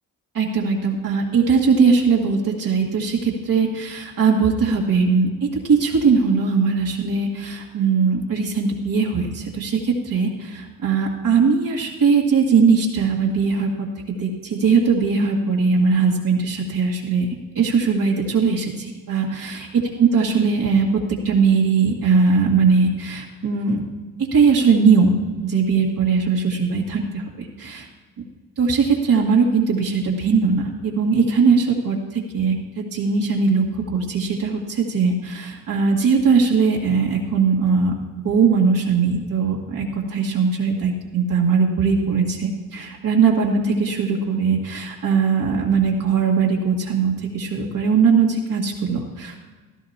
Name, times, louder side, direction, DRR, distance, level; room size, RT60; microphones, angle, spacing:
voice 1, 0.3-5.3 5.6-13.7 14.2-17.3 17.6-20.9 21.2-23.8 24.3-27.9 28.6-32.0 32.3-37.9 38.2-49.5, right 5 dB, 60° right, -3 dB, 2.0 m, -20 dB
15.5 x 12.5 x 2.9 m, 1.3 s
cardioid pair, 80°, 37 cm